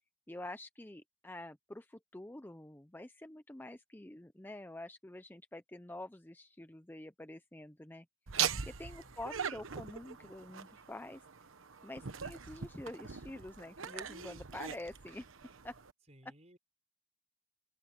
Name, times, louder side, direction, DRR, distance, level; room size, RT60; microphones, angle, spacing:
voice 1, 0.3-8.1 8.7-11.2 11.8-15.3 15.6-15.8, left 1 dB, 10° left, 0.5 m, -47 dB
Laughter, 8.3-15.9, right 8 dB, 80° right, 1.1 m, -41 dB
voice 2, 8.7-9.2 16.1-16.6, equal, 35° right, 5.8 m, -60 dB
open air
head